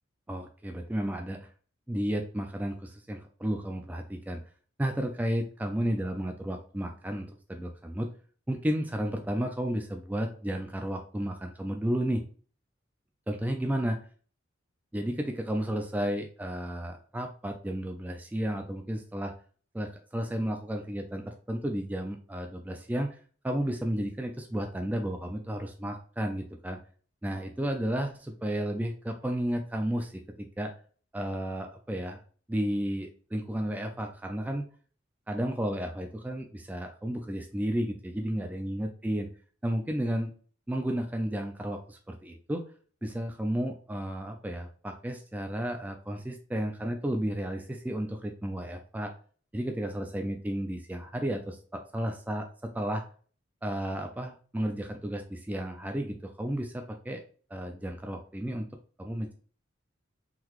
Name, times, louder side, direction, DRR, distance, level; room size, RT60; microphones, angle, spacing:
voice 1, 0.3-1.5 1.9-4.4 4.8-8.1 8.5-12.2 13.3-14.0 14.9-19.3 19.7-23.2 23.4-26.8 27.2-30.7 31.1-32.2 32.5-34.7 35.3-39.3 39.6-40.3 40.7-42.6 43.0-49.1 49.5-53.0 53.6-57.2 57.5-58.7 59.0-59.3, right 1 dB, 10° right, 4 dB, 0.3 m, -32 dB
3.8 x 2.8 x 2.9 m, 0.42 s
head